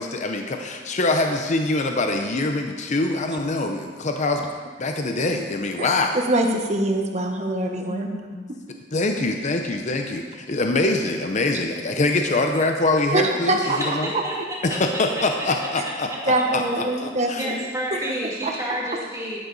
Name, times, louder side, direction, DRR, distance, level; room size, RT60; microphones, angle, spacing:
voice 1, 0.0-4.5 4.8-6.2 7.9-8.5 8.9-14.1 14.6-16.6 17.0-17.5, left 2 dB, 40° left, 4 dB, 0.7 m, -24 dB
voice 2, 5.8-8.1 13.1-13.9 16.2-17.6 17.9-18.0 18.4-18.5, right 1 dB, 35° right, 2 dB, 1.2 m, -24 dB
voice 3, 13.6-14.4 14.7-15.5 15.8-16.2 16.6-16.9 17.4-19.4, equal, 15° right, -5 dB, 2.4 m, -31 dB
11.0 x 11.0 x 4.1 m, 1.5 s
head